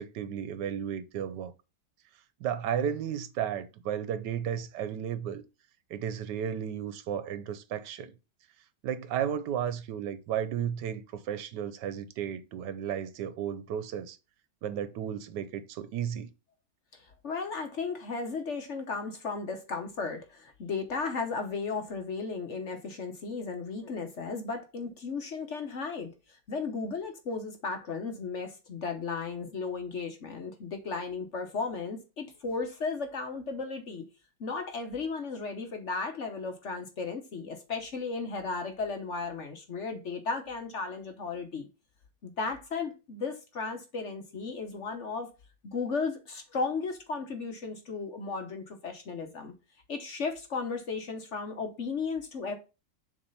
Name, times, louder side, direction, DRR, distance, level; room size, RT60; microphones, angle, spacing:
voice 1, 0.0-1.5 2.4-5.4 5.9-8.1 8.8-14.2 14.6-16.3, right 9 dB, 75° right, 1.3 m, -33 dB
voice 2, 16.9-26.1 26.5-34.0 34.4-41.7 42.2-45.3 45.6-49.5 49.9-52.5, left 4 dB, 50° left, 1.1 m, -35 dB
7.0 x 3.2 x 5.4 m
omnidirectional pair, 1.9 m